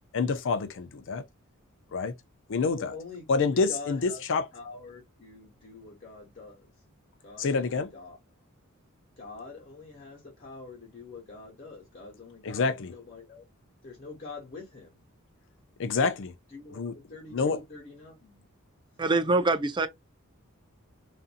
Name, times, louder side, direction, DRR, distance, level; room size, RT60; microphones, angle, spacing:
voice 1, 0.1-1.2 1.9-2.1 2.5-3.0 3.3-4.5 7.4-7.9 12.4-12.9 15.8-16.3 16.7-17.0 17.3-17.6, left 4 dB, 60° left, 0.5 m, -27 dB
voice 2, 2.7-4.2 4.5-6.7 7.2-8.2 9.2-13.4 13.8-15.0 16.5-18.4, left 4 dB, 40° left, 1.2 m, -45 dB
voice 3, 19.0-19.9, right 3 dB, 20° right, 0.4 m, -24 dB
2.6 x 2.6 x 2.5 m
head